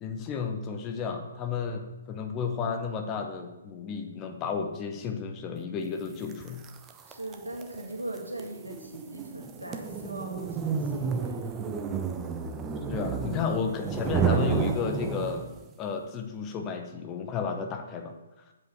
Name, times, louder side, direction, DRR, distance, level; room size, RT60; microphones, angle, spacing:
voice 1, 0.0-6.6 12.9-15.5 15.8-18.1, left 5 dB, 20° left, 5 dB, 0.9 m, -32 dB
sound 1, 6.3-15.7, right 6 dB, 15° right, 0.6 m, -32 dB
voice 2, 7.1-11.6, right 1 dB, 80° right, 0 dB, 2.1 m, -40 dB
7.7 x 5.2 x 6.9 m, 1.0 s
figure-of-eight pair, 130°, 0 cm